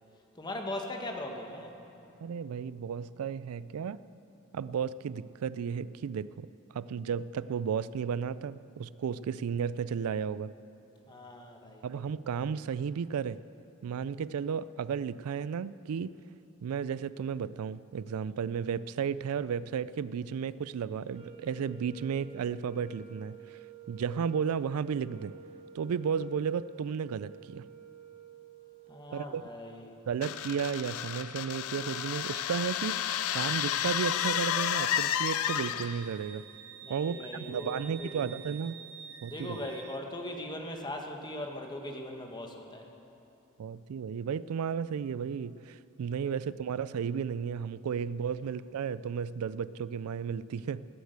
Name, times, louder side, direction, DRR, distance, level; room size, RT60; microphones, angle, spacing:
voice 1, 0.3-1.7 11.1-11.8 28.9-29.9 36.8-38.3 39.3-42.9 46.2-46.3 48.4-48.5, left 1 dB, 20° left, 2 dB, 1.3 m, -40 dB
voice 2, 2.2-4.0 4.5-10.5 11.8-13.4 13.8-16.2 16.6-23.6 23.9-25.3 25.7-27.7 29.1-29.4 30.1-36.4 36.9-38.8 39.2-39.6 43.6-50.9, right 7 dB, 90° right, 17 dB, 0.4 m, -33 dB
sound 1, 21.0-29.2, right 5 dB, 25° right, 1.1 m, -51 dB
sound 2, 30.2-36.1, left 10 dB, 80° left, 0.4 m, -31 dB
Wind instrument woodwind instrument, 35.5-40.0, right 8 dB, 65° right, 0.8 m, -48 dB
18.5 x 8.2 x 8.0 m, 2.8 s
head